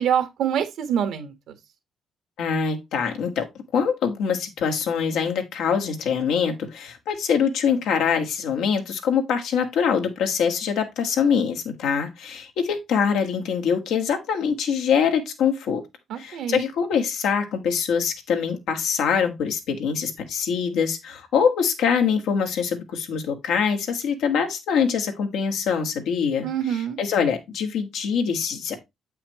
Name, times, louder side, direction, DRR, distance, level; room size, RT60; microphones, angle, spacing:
voice 1, 0.0-1.3 16.1-16.6 26.4-27.0, right 9 dB, 80° right, 1.5 m, -25 dB
voice 2, 2.4-3.5 3.7-15.8 16.2-28.8, left 6 dB, 85° left, 1.7 m, -24 dB
8.0 x 5.7 x 3.1 m
cardioid pair, 90°, 0 cm